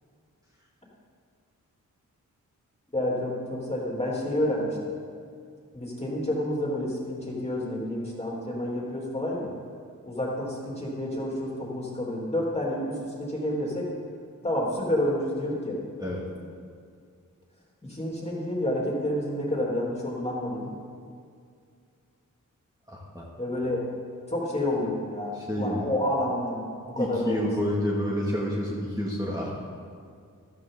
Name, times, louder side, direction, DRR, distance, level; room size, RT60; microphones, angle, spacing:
voice 1, 2.9-4.8 5.7-9.5 10.1-13.9 14.4-15.8 17.8-20.7 23.4-23.9 24.3-27.5, left 1 dB, 20° left, -4 dB, 3.4 m, -29 dB
voice 2, 22.9-23.2 25.3-25.9 27.0-29.5, equal, 10° right, -5 dB, 2.3 m, -29 dB
14.5 x 13.5 x 3.9 m, 2.3 s
wide cardioid pair, 85°, 31 cm